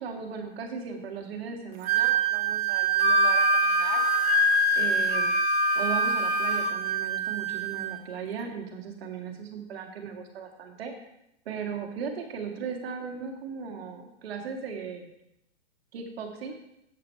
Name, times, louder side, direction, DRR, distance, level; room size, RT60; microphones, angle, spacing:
voice 1, 0.0-4.0 4.8-5.3 5.8-11.1 11.5-15.1 15.9-16.5, right 6 dB, 60° right, 4 dB, 1.8 m, -37 dB
Wind instrument woodwind instrument, 1.8-8.0, right 15 dB, 25° right, 0.9 m, -27 dB
Wind instrument woodwind instrument 2, 3.0-6.7, left 5 dB, 65° left, 0.9 m, -25 dB
7.8 x 7.5 x 4.5 m, 0.81 s
hypercardioid pair, 125°, 34 cm